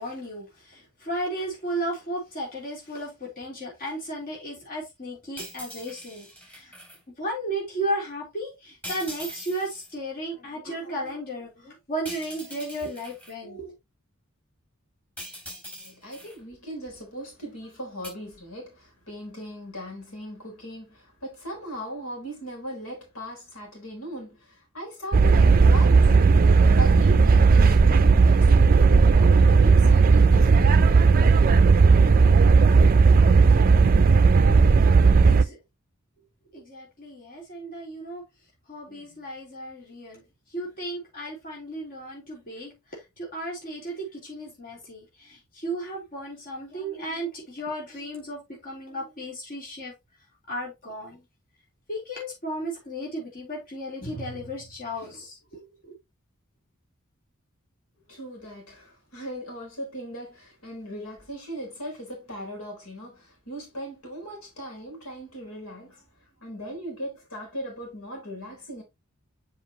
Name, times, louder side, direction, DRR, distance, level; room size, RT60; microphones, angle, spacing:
voice 1, 0.0-6.7 7.2-13.7 35.2-35.6 36.5-38.2 38.7-40.2 40.5-49.9 50.5-51.2 51.9-55.9, right 1 dB, 45° left, 3.7 m, -34 dB
sound 1, 5.4-7.0 8.8-9.9 12.0-13.3 15.2-16.4 18.0-18.1, equal, 10° left, 3.5 m, -42 dB
voice 2, 15.8-31.1 58.1-66.0 66.4-68.8, equal, 90° left, 3.9 m, -38 dB
sound 2, 25.1-35.4, right 4 dB, 45° right, 0.5 m, -16 dB
7.4 x 5.3 x 2.9 m
head